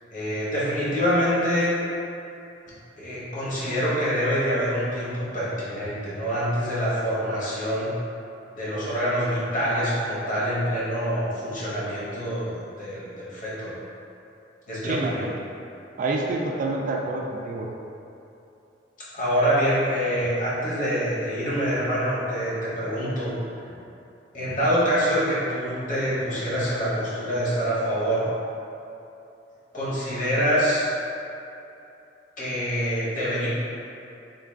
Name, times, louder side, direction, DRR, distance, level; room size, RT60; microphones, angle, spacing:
voice 1, 0.1-1.7 3.0-7.9 8.5-13.8 14.7-15.3 19.1-23.3 23.7-23.8 24.3-28.3 29.7-30.9 32.4-33.5, equal, 45° left, -8 dB, 1.1 m, -25 dB
voice 2, 16.0-17.7, right 2 dB, 45° right, 0 dB, 0.3 m, -27 dB
3.7 x 2.4 x 3.5 m, 2.8 s
head